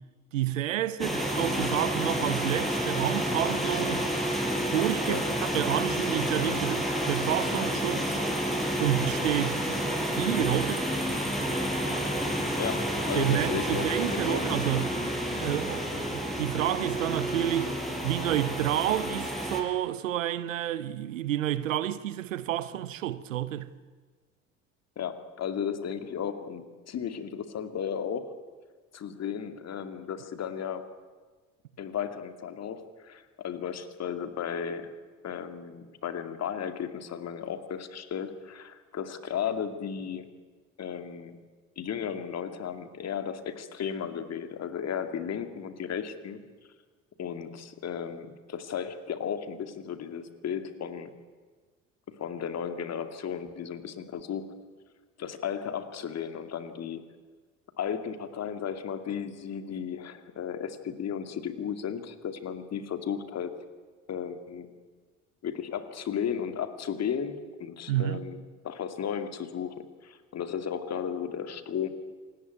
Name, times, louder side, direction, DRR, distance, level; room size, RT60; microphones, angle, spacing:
voice 1, 0.3-4.1 4.7-8.2 8.8-9.9 10.2-10.9 13.1-15.0 15.3-17.7 18.0-23.7 67.9-68.2, right 12 dB, 75° right, 1.0 m, -29 dB
sound 1, 1.0-19.6, equal, ahead, 6.2 m, -30 dB
voice 2, 12.6-14.4 25.0-28.3 28.9-30.9 31.8-34.9 35.2-40.3 40.8-41.4 41.8-46.4 47.2-51.1 52.1-54.5 55.2-57.0 57.8-63.5 64.1-64.7 65.4-69.7 70.0-71.9, left 8 dB, 40° left, 2.4 m, -34 dB
27.0 x 19.0 x 9.4 m
figure-of-eight pair, 55°, 39 cm